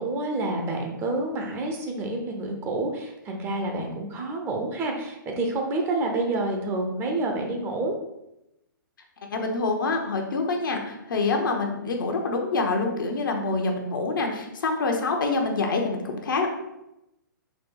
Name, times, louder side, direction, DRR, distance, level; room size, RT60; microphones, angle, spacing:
voice 1, 0.0-7.9, right 2 dB, 20° right, 2 dB, 0.7 m, -28 dB
voice 2, 9.3-16.5, left 3 dB, 70° left, 2 dB, 0.9 m, -26 dB
4.1 x 2.3 x 4.6 m, 0.88 s
hypercardioid pair, 130°, 11 cm